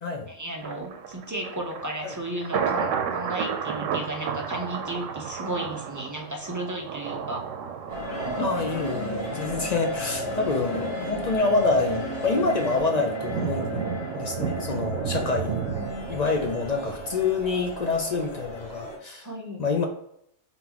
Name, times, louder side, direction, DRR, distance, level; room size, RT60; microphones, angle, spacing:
voice 1, 0.3-7.5 8.2-8.7 10.3-10.4 15.4-16.1 19.2-19.7, right 2 dB, 25° right, 0 dB, 0.4 m, -34 dB
Thunder, 0.6-17.7 18.1-18.2, right 7 dB, 85° right, 0.9 m, -33 dB
sound 1, 7.9-19.0, equal, 20° left, 1.6 m, -34 dB
voice 2, 8.4-13.8 14.1-15.6 16.1-19.3 19.6-19.9, left 3 dB, 55° left, 4 dB, 0.4 m, -27 dB
3.9 x 3.8 x 2.9 m, 0.73 s
omnidirectional pair, 1.3 m